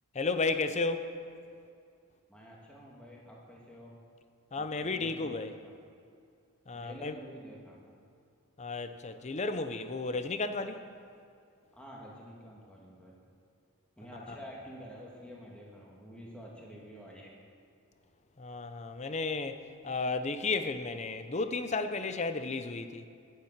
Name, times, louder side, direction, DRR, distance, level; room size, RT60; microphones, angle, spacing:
voice 1, 0.1-1.2 4.5-5.5 6.7-7.1 8.6-10.8 14.3-14.4 18.4-23.1, left 3 dB, 30° left, 0.6 m, -33 dB
voice 2, 2.3-3.9 4.6-5.5 6.7-7.8 11.7-13.1 14.0-17.3, equal, 5° left, 1.8 m, -48 dB
10.5 x 10.5 x 7.3 m
head